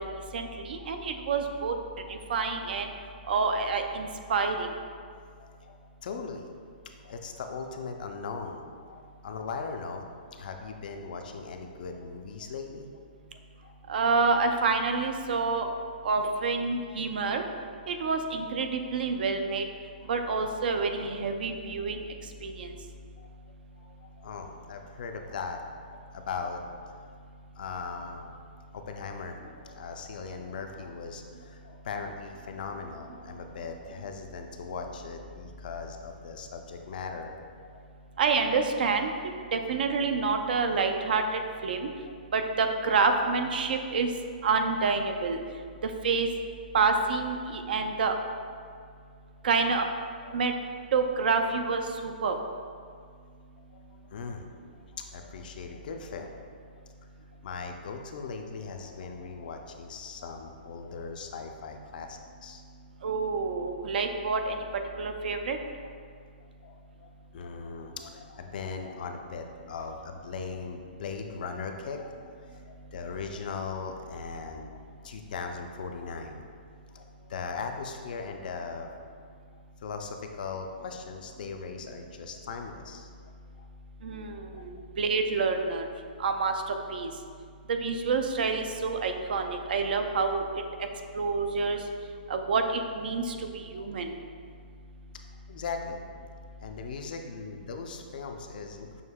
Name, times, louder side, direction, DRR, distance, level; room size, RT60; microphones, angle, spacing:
voice 1, 0.3-1.7 2.1-2.9 3.3-4.7 13.9-15.7 16.0-17.4 17.9-19.6 20.1-22.0 22.4-22.7 38.2-39.1 39.5-41.9 42.3-44.1 44.4-45.4 45.8-46.3 46.7-48.2 49.4-49.9 50.3-50.5 50.9-52.3 63.0-64.7 65.0-65.6 84.0-85.9 86.2-87.1 87.7-90.4 91.1-91.8 92.3-94.1, right 4 dB, 65° right, 5 dB, 0.4 m, -28 dB
voice 2, 2.1-2.4 3.3-3.4 5.1-6.5 7.0-12.9 13.6-13.8 15.3-15.4 20.0-20.3 23.2-23.4 23.7-26.6 27.6-28.2 28.7-37.9 42.0-42.2 47.4-47.5 48.6-48.8 50.2-50.4 53.6-54.5 54.7-56.4 56.8-57.0 57.4-62.6 66.6-76.4 76.9-79.0 79.5-83.1 83.6-83.7 84.5-84.6 93.2-93.3 93.7-93.9 95.5-96.0 96.6-99.0, left 5 dB, 60° left, 4 dB, 0.4 m, -39 dB
6.4 x 2.7 x 2.2 m, 2.1 s
hypercardioid pair, 155°, 5 cm